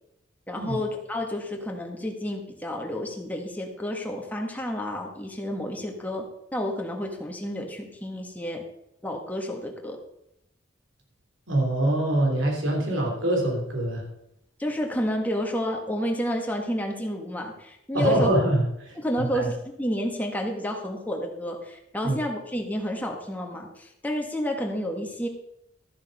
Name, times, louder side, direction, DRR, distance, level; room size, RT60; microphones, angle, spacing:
voice 1, 0.5-6.2 6.5-8.6 9.0-10.0 14.6-18.3 19.0-25.3, equal, 10° left, 1 dB, 1.6 m, -30 dB
voice 2, 11.5-14.0 17.9-19.5 22.0-22.2, right 1 dB, 90° right, 0 dB, 3.5 m, -24 dB
12.5 x 7.4 x 5.5 m, 0.80 s
head